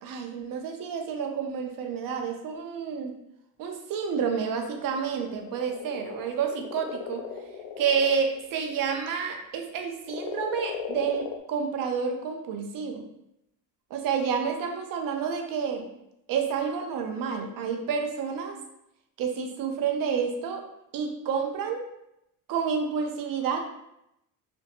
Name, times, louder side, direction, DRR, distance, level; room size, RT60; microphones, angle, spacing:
voice 1, 0.0-3.1 3.6-7.2 7.8-13.0 13.9-15.9 16.3-18.6 19.2-20.6 20.9-21.8 22.5-23.6, right 6 dB, 45° right, 4 dB, 0.6 m, -29 dB
sound 1, 5.0-9.4 10.1-11.4, left 8 dB, 55° left, 0.5 m, -37 dB
2.5 x 2.2 x 2.6 m, 0.82 s
supercardioid pair, 80°, 46 cm